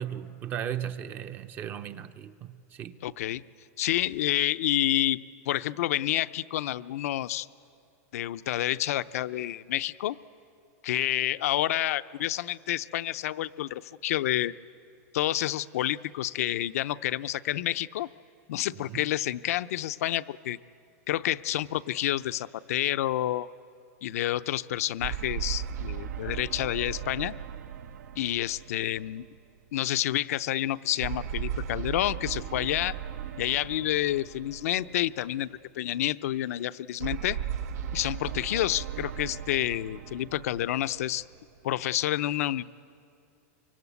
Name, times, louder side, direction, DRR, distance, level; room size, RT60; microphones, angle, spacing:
voice 1, 0.0-3.0 18.8-19.0, right 9 dB, 20° right, 0.6 m, -36 dB
voice 2, 3.0-3.4 3.8-5.2 5.5-7.5 8.1-10.2 10.8-14.5 15.1-18.1 18.5-20.6 21.1-23.5 24.0-27.3 28.2-29.3 29.7-32.9 33.4-35.5 35.8-37.4 37.9-41.2 41.6-42.6, left 13 dB, 65° left, 0.6 m, -29 dB
sound 1, 25.0-29.6 31.0-35.4 37.0-41.6, right 9 dB, 80° right, 1.0 m, -37 dB
24.5 x 24.5 x 8.2 m
supercardioid pair, 170°, 8 cm